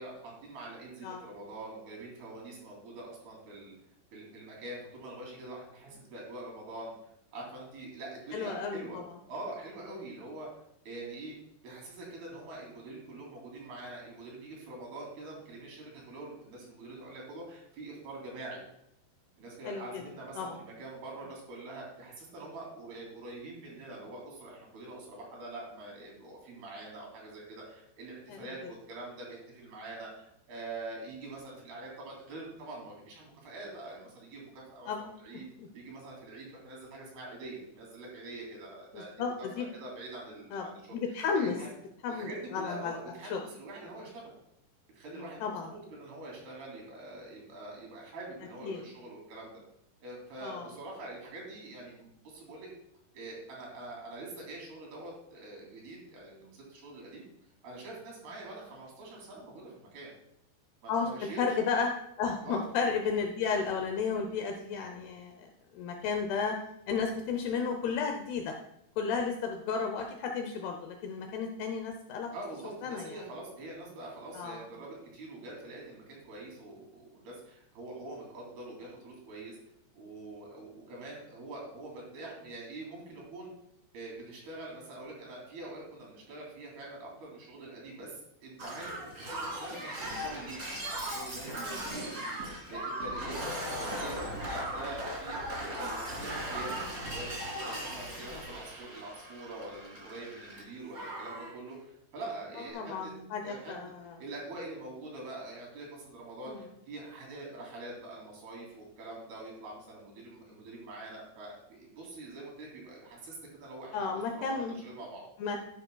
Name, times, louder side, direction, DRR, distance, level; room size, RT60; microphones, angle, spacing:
voice 1, 0.0-3.7 4.1-6.9 7.3-9.0 9.3-10.5 10.8-11.3 11.6-18.6 19.4-34.9 35.2-35.5 35.7-41.7 42.1-44.3 44.9-49.6 50.0-52.7 53.1-57.2 57.6-60.1 60.8-61.4 62.4-62.7 72.3-79.6 79.9-83.5 83.9-90.6 91.1-103.1 103.4-103.7 104.2-115.3, right 2 dB, 60° right, -2 dB, 4.6 m, -45 dB
voice 2, 8.3-8.8 19.7-20.0 20.4-20.6 28.3-28.5 34.9-35.1 35.6-35.7 38.9-39.7 40.5-40.6 40.9-41.6 42.0-43.0 43.3-43.4 45.2-45.7 48.6-48.8 50.4-50.7 60.9-61.1 61.4-61.9 62.2-65.5 65.7-66.6 66.9-68.5 69.0-72.3 72.8-73.2 74.3-74.6 91.7-91.8 98.3-98.4 102.7-104.1 106.5-106.6 113.9-114.8 115.4-115.6, left 5 dB, 80° left, 4 dB, 2.4 m, -33 dB
Shatter, 88.6-100.6 100.9-101.5 102.5-102.7, right 1 dB, 35° right, 1.2 m, -38 dB
12.5 x 10.5 x 2.3 m, 0.76 s
omnidirectional pair, 5.3 m